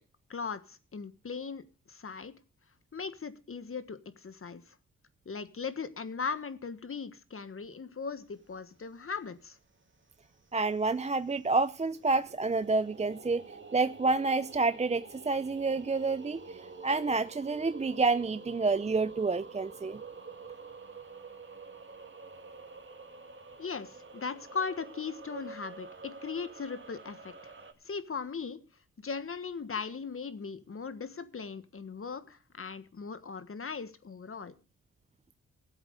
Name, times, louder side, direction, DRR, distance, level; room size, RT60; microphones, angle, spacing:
voice 1, 0.3-2.4 2.9-4.7 5.2-9.6 23.6-27.5 27.8-28.6 29.0-34.5, left 5 dB, 40° left, 1.4 m, -38 dB
sound 1, 8.3-9.0 9.4-27.7, right 4 dB, 35° right, 2.4 m, -48 dB
voice 2, 10.5-13.5 13.7-20.0, right 3 dB, 20° right, 0.5 m, -29 dB
14.5 x 8.0 x 6.7 m
cardioid pair, 70°, 32 cm